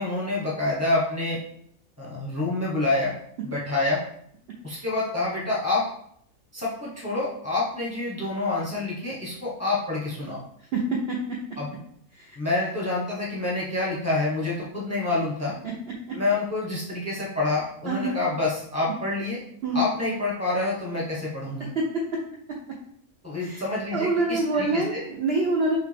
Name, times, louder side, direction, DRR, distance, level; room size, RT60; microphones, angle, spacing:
voice 1, 0.0-1.4 2.0-3.1 3.4-4.0 4.6-5.8 6.5-10.4 11.6-11.7 12.4-15.5 16.1-19.4 19.7-21.7 23.2-25.0, left 2 dB, 15° left, -4 dB, 0.7 m, -27 dB
voice 2, 10.7-11.2 12.2-12.4 16.1-16.2 17.9-18.2 19.6-19.8 21.8-21.9 23.4-23.6 23.9-25.8, right 2 dB, 60° right, -1 dB, 0.7 m, -25 dB
5.7 x 2.3 x 3.3 m, 0.69 s
omnidirectional pair, 1.6 m